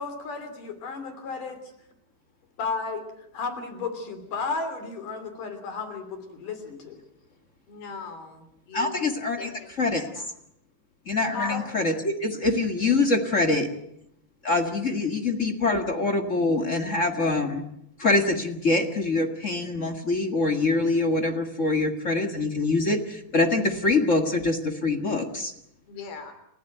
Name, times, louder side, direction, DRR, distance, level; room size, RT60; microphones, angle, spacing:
voice 1, 0.0-1.6 2.6-3.0 3.3-7.0 11.3-11.6, left 4 dB, 60° left, 9 dB, 4.4 m, -33 dB
voice 2, 7.7-9.1 9.4-9.7 10.0-10.3 11.3-11.6 25.9-26.3, left 5 dB, 80° left, 9 dB, 5.4 m, -41 dB
voice 3, 8.7-9.5 9.8-10.3 11.0-13.7 14.4-17.6 18.0-25.5, left 2 dB, 40° left, 5 dB, 1.1 m, -24 dB
29.0 x 15.0 x 9.2 m, 0.76 s
omnidirectional pair, 4.4 m